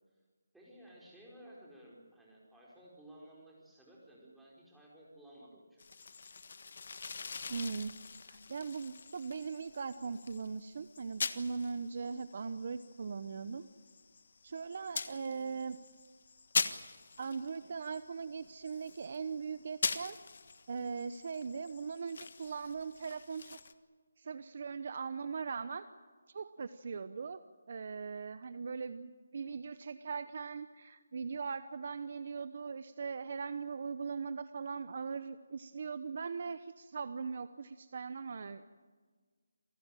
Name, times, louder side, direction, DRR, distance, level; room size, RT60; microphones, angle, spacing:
voice 1, 0.5-6.0 15.0-15.5, right 1 dB, ahead, -6 dB, 4.7 m, -56 dB
sound 1, 5.8-23.7, left 4 dB, 50° left, 1.5 m, -43 dB
voice 2, 7.5-7.9 8.3-13.7 14.4-15.8 17.2-20.2 20.7-23.6 24.2-25.9 26.3-27.4 27.7-38.7, right 5 dB, 40° right, 12 dB, 0.9 m, -40 dB
28.0 x 18.0 x 9.1 m, 1.5 s
hypercardioid pair, 175°, 0 cm